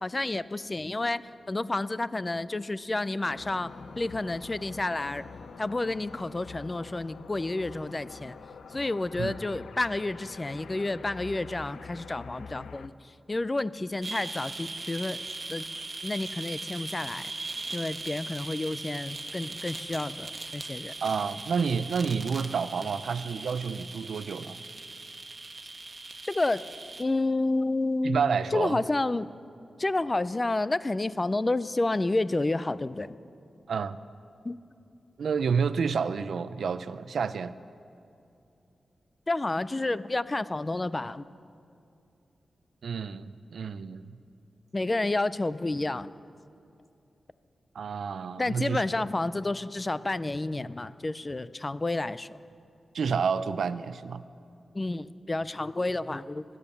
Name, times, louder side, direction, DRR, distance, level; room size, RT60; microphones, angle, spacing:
voice 1, 0.0-1.2 1.5-3.7 4.0-5.3 5.6-8.4 8.7-12.9 13.3-15.2 15.5-15.6 16.0-17.3 17.7-20.9 26.2-26.6 27.0-28.3 28.5-29.3 29.8-33.2 34.4-34.6 39.3-41.2 44.7-46.1 48.4-52.4 54.7-56.4, left 2 dB, 25° left, 16 dB, 0.3 m, -30 dB
sound 1, 2.8-11.6, equal, 50° left, 4.3 m, -56 dB
sound 2, 3.3-12.9, left 6 dB, 85° left, 0.5 m, -46 dB
sound 3, 14.0-27.0, right 3 dB, 35° right, 1.1 m, -39 dB
voice 2, 21.0-24.6 28.0-28.8 33.7-34.0 35.2-37.5 42.8-44.2 47.7-48.8 52.9-54.2, right 6 dB, 85° right, 14 dB, 0.5 m, -29 dB
15.0 x 12.5 x 7.0 m, 2.7 s
wide cardioid pair, 125°, 0 cm